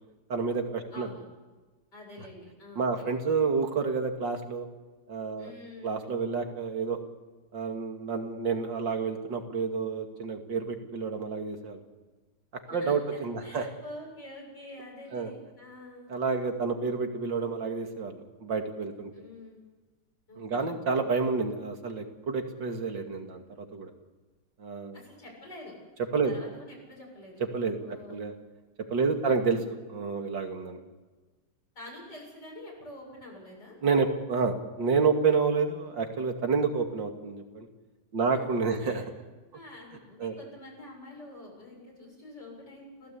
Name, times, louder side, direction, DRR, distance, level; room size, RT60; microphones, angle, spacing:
voice 1, 0.3-1.1 2.8-4.7 5.1-5.5 5.8-7.0 7.5-11.8 12.7-13.7 15.1-15.3 16.1-19.1 20.4-23.9 24.6-25.0 26.1-26.3 27.5-28.3 28.9-30.8 33.8-37.7 38.1-39.0 40.2-40.4, right 5 dB, 80° right, 4 dB, 3.0 m, -29 dB
voice 2, 0.9-1.2 1.9-3.1 5.4-5.9 12.7-16.1 19.1-19.6 20.3-20.7 24.9-25.8 26.2-27.4 27.8-28.3 29.1-29.5 31.7-33.8 38.2-38.5 38.8-39.0 39.5-43.2, left 1 dB, 65° left, -3 dB, 8.3 m, -47 dB
30.0 x 16.5 x 8.5 m, 1.3 s
omnidirectional pair, 2.0 m